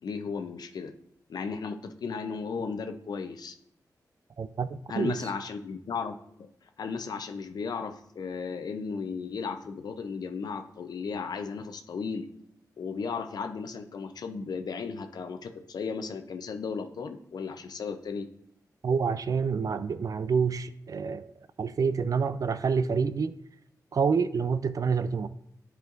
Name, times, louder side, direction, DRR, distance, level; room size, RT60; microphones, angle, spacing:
voice 1, 0.0-0.9 1.3-3.6 4.9-6.5 6.8-12.3 12.8-18.3, left 5 dB, 75° left, 0.6 m, -35 dB
voice 2, 4.4-4.7 4.9-5.2 18.8-21.3 21.6-23.3 23.9-25.3, right 5 dB, 60° right, 0.4 m, -27 dB
10.5 x 4.4 x 2.6 m
cardioid pair, 80°, 7 cm